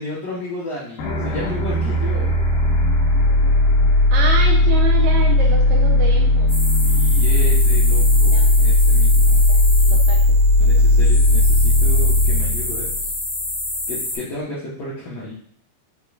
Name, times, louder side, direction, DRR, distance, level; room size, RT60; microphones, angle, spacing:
voice 1, 0.0-2.4 6.8-9.4 10.6-13.1 13.9-15.3, left 2 dB, 65° left, -8 dB, 1.7 m, -33 dB
sound 1, 1.0-13.7, left 1 dB, 85° left, 2.7 m, -16 dB
voice 2, 4.1-6.5 8.3-8.7 9.2-10.9, right 3 dB, 80° right, 0 dB, 1.6 m, -28 dB
sound 2, 6.5-14.2, left 2 dB, 30° left, 1.9 m, -28 dB
7.0 x 2.9 x 2.3 m, 0.62 s
omnidirectional pair, 4.0 m